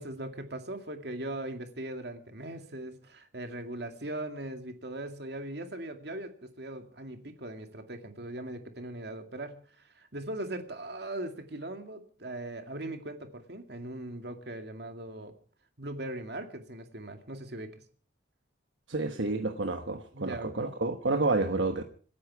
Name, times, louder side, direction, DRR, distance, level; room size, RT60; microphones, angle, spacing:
voice 1, 0.0-15.3 15.8-17.7 20.1-20.7, right 1 dB, 60° right, 2.2 m, -40 dB
voice 2, 18.9-21.8, right 3 dB, 75° right, 1.2 m, -29 dB
26.0 x 10.0 x 4.8 m
head